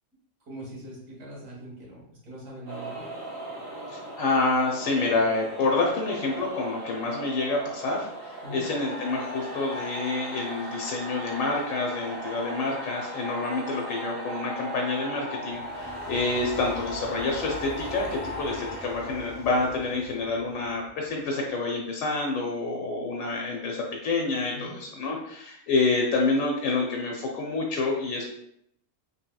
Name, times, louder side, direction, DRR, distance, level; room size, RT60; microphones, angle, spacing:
voice 1, 0.5-3.0 8.4-8.7 24.5-24.8, right 1 dB, 85° right, -4 dB, 1.6 m, -42 dB
sound 1, 2.7-21.2, right 1 dB, 50° right, 1.4 m, -38 dB
voice 2, 3.9-28.3, left 3 dB, 85° left, -1 dB, 1.0 m, -28 dB
3.3 x 2.8 x 2.2 m, 0.74 s
omnidirectional pair, 1.3 m